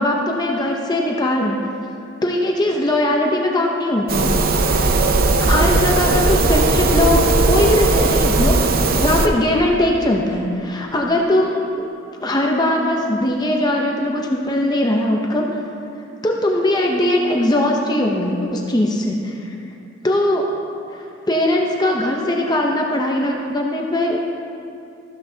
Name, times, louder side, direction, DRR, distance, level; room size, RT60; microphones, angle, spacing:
voice 1, 0.0-1.6 2.2-5.0 5.4-8.6 9.0-11.9 12.2-15.5 16.2-19.5 20.0-20.5 21.3-24.2, left 1 dB, 20° left, 0 dB, 0.7 m, -20 dB
sound 1, 4.1-9.3, right 3 dB, 45° right, 0.6 m, -17 dB
14.0 x 12.5 x 2.8 m, 2.6 s
head